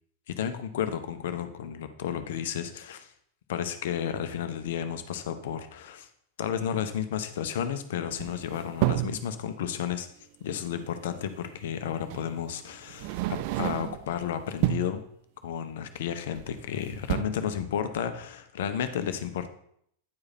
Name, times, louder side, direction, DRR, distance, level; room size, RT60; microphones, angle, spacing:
voice 1, 0.3-3.1 3.5-6.1 6.4-10.1 10.4-15.0 15.4-19.5, left 9 dB, 55° left, 9 dB, 0.7 m, -32 dB
sound 1, 8.2-9.2 10.9-11.0 12.1-12.3 12.9-14.1 14.5-15.0 16.3-16.7 16.9-17.2, right 17 dB, 45° right, 0.4 m, -30 dB
9.5 x 4.8 x 4.2 m, 0.68 s
figure-of-eight pair, 90°, 0 cm